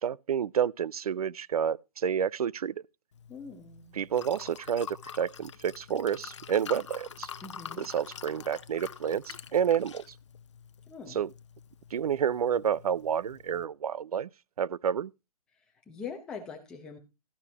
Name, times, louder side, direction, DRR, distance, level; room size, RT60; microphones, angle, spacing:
voice 1, 0.0-2.7 3.9-7.3 7.8-10.0 11.1-11.3 11.9-14.3 14.6-15.1, right 8 dB, 75° right, 0.5 m, -29 dB
Liquid, 3.1-13.6, left 7 dB, 50° left, 0.8 m, -46 dB
voice 2, 3.3-4.0 7.4-7.9 10.9-11.2 15.9-17.0, left 5 dB, 5° left, 0.8 m, -42 dB
13.0 x 9.7 x 2.9 m
hypercardioid pair, 180°, 19 cm